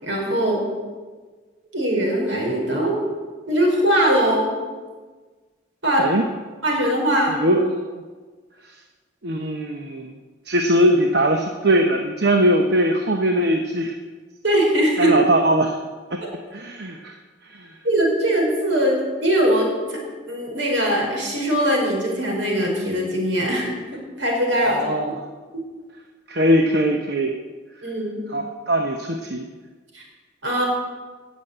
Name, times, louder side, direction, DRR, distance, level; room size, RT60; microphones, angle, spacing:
voice 1, 0.0-0.6 1.7-3.0 3.5-4.5 5.8-6.1 6.6-7.4 14.4-15.1 16.2-16.3 17.8-20.0 20.3-24.8 27.8-28.2 29.9-30.0 30.4-30.6, right 1 dB, 75° right, 0 dB, 5.0 m, -21 dB
voice 2, 7.4-8.0 8.6-8.7 9.2-10.2 10.5-14.0 15.0-15.8 16.1-16.2 16.5-17.2 17.4-17.8 24.6-25.1 26.3-27.4 28.3-29.5, right 1 dB, 55° right, 4 dB, 1.0 m, -20 dB
18.5 x 7.3 x 8.1 m, 1.4 s
head